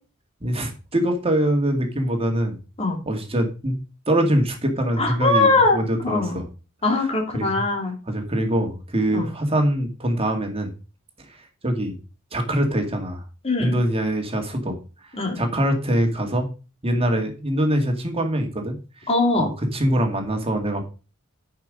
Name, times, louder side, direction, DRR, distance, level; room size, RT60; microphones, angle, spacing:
voice 1, 0.4-2.6 3.1-3.8 4.1-6.5 7.3-7.5 8.1-10.7 11.6-12.0 12.3-13.2 13.6-14.8 15.4-16.5 16.8-18.8 19.4-20.9, right 1 dB, 30° right, 3 dB, 2.1 m, -23 dB
voice 2, 5.0-5.8 6.0-6.4 6.8-7.9 9.1-9.3 13.4-13.8 15.2-15.4 19.1-19.5, left 2 dB, 30° left, 1 dB, 2.7 m, -21 dB
10.5 x 5.7 x 5.2 m, 0.33 s
head